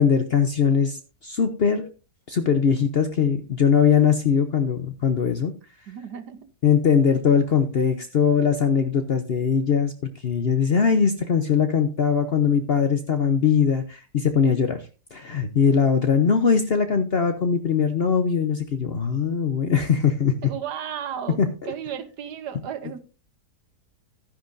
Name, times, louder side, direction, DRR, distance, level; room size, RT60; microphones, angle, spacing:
voice 1, 0.0-1.9 2.3-5.5 6.6-9.9 10.2-14.8 15.1-20.3 21.4-21.5, left 6 dB, 50° left, 8 dB, 0.7 m, -21 dB
voice 2, 5.9-6.5 20.4-21.4 21.6-23.0, right 9 dB, 80° right, 11 dB, 1.5 m, -34 dB
12.5 x 10.5 x 2.6 m, 0.34 s
omnidirectional pair, 1.8 m